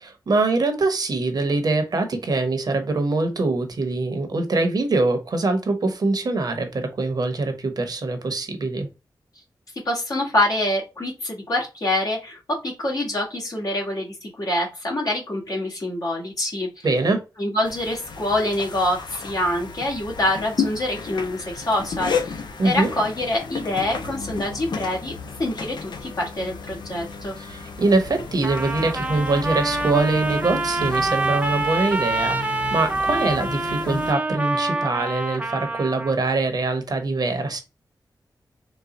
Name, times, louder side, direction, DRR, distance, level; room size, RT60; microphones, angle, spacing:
voice 1, 0.3-8.9 16.8-17.2 22.6-22.9 27.4-37.6, right 3 dB, 60° right, 0.9 m, -23 dB
voice 2, 9.8-16.7 17.4-22.4 22.6-25.1 25.4-27.4, left 1 dB, 55° left, 1.7 m, -25 dB
sound 1, 17.6-34.1, left 5 dB, 70° left, 0.6 m, -33 dB
Trumpet, 28.4-36.2, right 2 dB, 15° right, 0.6 m, -26 dB
4.0 x 2.2 x 3.7 m
wide cardioid pair, 90°, 8 cm